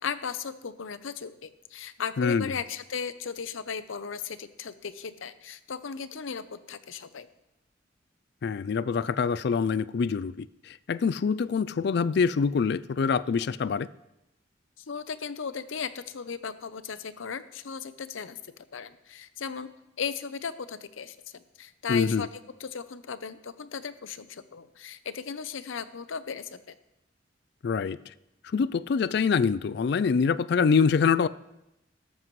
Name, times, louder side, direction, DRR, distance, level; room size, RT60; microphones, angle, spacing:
voice 1, 0.0-7.3 14.8-18.4 18.7-19.7 20.0-22.3 22.6-26.7, left 6 dB, 90° left, 0.6 m, -36 dB
voice 2, 2.2-2.5 8.4-13.9 21.9-22.3 27.6-28.0 28.4-31.3, left 5 dB, 55° left, 0.3 m, -25 dB
13.5 x 12.5 x 3.1 m
head